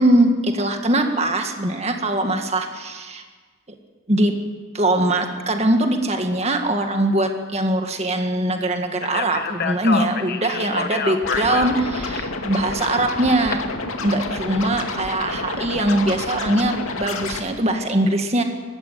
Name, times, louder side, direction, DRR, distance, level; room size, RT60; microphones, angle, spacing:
voice 1, 0.0-3.2 4.1-4.3 4.7-13.6 14.0-18.4, right 1 dB, 30° right, 5 dB, 1.8 m, -21 dB
Speech, 9.0-13.5, left 5 dB, 45° left, 1.2 m, -28 dB
Scratching (performance technique), 11.2-17.4, left 3 dB, 80° left, 2.4 m, -29 dB
20.5 x 15.5 x 9.5 m, 1.4 s
head